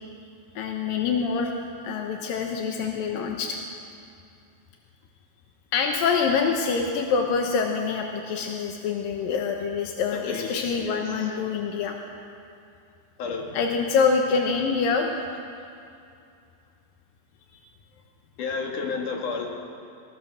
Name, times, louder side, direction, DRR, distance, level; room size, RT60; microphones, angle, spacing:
voice 1, 0.6-1.5 1.8-3.6 5.7-12.0 13.5-15.2, left 5 dB, 70° left, 2 dB, 2.2 m, -25 dB
voice 2, 10.1-11.3 13.2-13.6 18.4-19.5, left 4 dB, 50° left, 0 dB, 3.2 m, -32 dB
22.0 x 19.0 x 6.5 m, 2.5 s
omnidirectional pair, 5.5 m